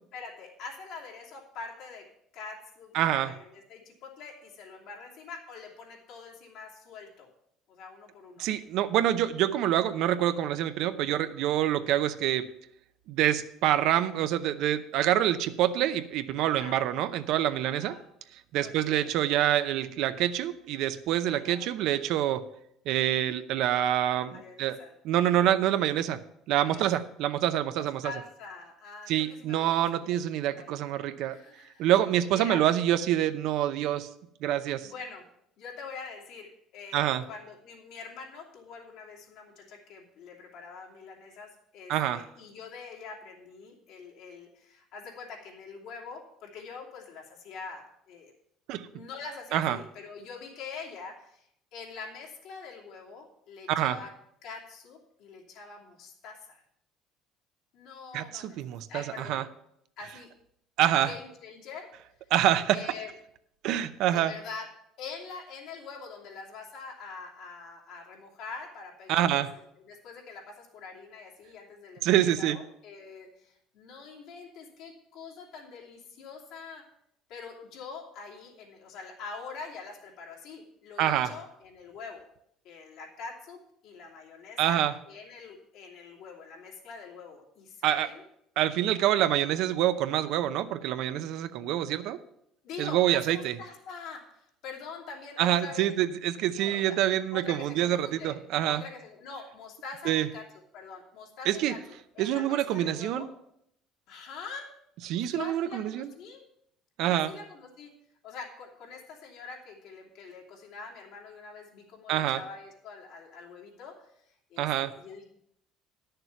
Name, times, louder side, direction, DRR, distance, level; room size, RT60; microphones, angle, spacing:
voice 1, 0.1-2.0 2.3-7.3 7.7-8.5 16.4-16.8 17.6-18.0 18.6-19.1 21.3-21.7 24.1-24.9 26.6-26.9 27.7-30.3 30.6-31.9 32.3-32.6 34.8-35.2 35.6-48.3 48.7-54.1 54.4-56.6 57.7-58.6 58.9-59.4 60.0-60.3 60.9-61.9 62.7-63.1 64.0-64.7 65.0-72.1 72.4-76.8 77.3-82.2 82.6-83.6 83.8-84.8 85.1-88.2 92.6-95.9 96.6-97.0 97.3-98.4 98.7-100.4 100.7-101.8 102.1-103.3 104.1-104.7 105.2-106.4 107.1-107.9 108.2-113.9 114.3-115.3, left 5 dB, 70° left, -2 dB, 2.7 m, -44 dB
voice 2, 2.9-3.4 8.4-12.5 13.1-18.0 18.5-22.4 22.9-24.8 25.0-26.2 26.5-28.1 29.1-31.4 31.8-34.1 34.4-34.9 36.9-37.2 41.9-42.2 48.7-48.9 49.5-49.8 53.7-54.0 58.1-59.4 60.8-61.1 62.3-62.8 63.6-64.3 69.1-69.5 72.0-72.6 81.0-81.3 84.6-84.9 87.8-88.1 88.6-92.2 92.8-93.6 95.4-98.8 100.0-100.3 101.5-101.8 102.2-103.3 105.0-106.1 107.0-107.3 112.1-112.4 114.6-114.9, right 12 dB, 70° right, 11 dB, 0.6 m, -26 dB
10.5 x 6.8 x 5.7 m, 0.74 s
cardioid pair, 135°, 0 cm